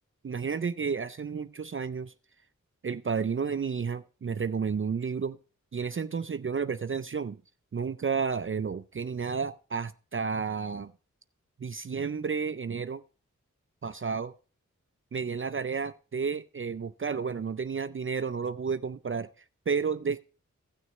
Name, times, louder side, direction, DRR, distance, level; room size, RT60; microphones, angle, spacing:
voice 1, 0.2-2.1 2.8-5.4 5.7-7.4 7.7-10.9 11.6-13.0 13.8-14.3 15.1-19.3 19.7-20.3, right 5 dB, 40° right, 0.5 m, -31 dB
16.0 x 6.3 x 3.0 m
cardioid pair, 40°, 31 cm